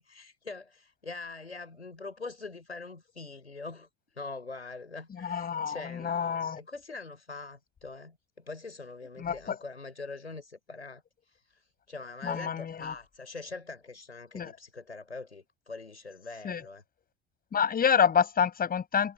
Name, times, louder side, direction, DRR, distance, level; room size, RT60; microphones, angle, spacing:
voice 1, 0.0-3.9 4.1-16.8, left 3 dB, 85° left, 4.5 m, -43 dB
voice 2, 5.2-6.6 9.2-9.6 12.2-12.9 14.3-14.5 16.4-16.6 17.5-19.1, left 7 dB, 25° left, 7.8 m, -28 dB
figure-of-eight pair, 75°, 33 cm